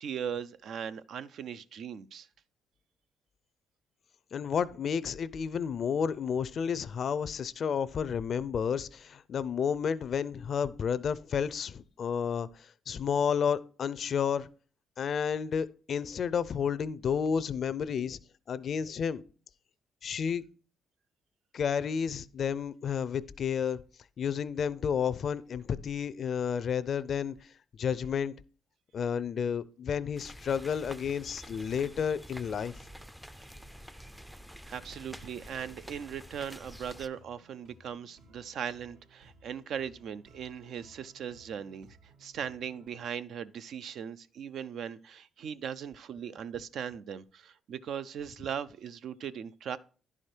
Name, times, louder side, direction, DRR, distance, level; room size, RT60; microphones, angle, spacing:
voice 1, 0.0-2.3 34.7-49.8, right 8 dB, 70° right, 0.4 m, -39 dB
voice 2, 4.3-12.5 12.9-14.5 15.0-18.2 18.5-19.2 20.0-20.4 21.5-23.8 24.2-27.3 27.8-28.3 28.9-32.7, left 7 dB, 55° left, 0.4 m, -31 dB
sound 1, 30.1-37.1, equal, 5° right, 0.4 m, -48 dB
sound 2, 34.7-42.9, right 2 dB, 90° right, 2.7 m, -60 dB
10.5 x 4.9 x 4.4 m
cardioid pair, 90°, 0 cm